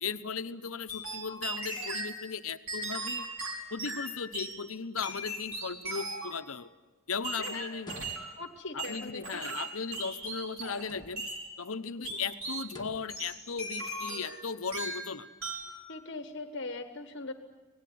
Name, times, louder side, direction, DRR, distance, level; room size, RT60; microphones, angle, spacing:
voice 1, 0.0-3.3 3.7-6.7 7.1-7.9 8.7-11.2 11.6-15.3, left 5 dB, 70° left, 10 dB, 1.0 m, -37 dB
sound 1, 0.9-2.1 2.7-4.5 5.0-6.4 7.2-8.3 8.8-10.9 11.2-11.4 12.0-12.6 13.1-14.4 14.7-15.1 15.4-15.8, right 2 dB, 70° right, 6.0 m, -38 dB
sound 2, 7.8-8.6 10.8-11.4 12.7-13.2, left 1 dB, 20° left, 2.1 m, -48 dB
voice 2, 8.4-9.6 12.0-12.2 15.9-17.3, left 3 dB, 55° left, 7 dB, 1.4 m, -41 dB
26.0 x 19.5 x 9.4 m, 1.2 s
head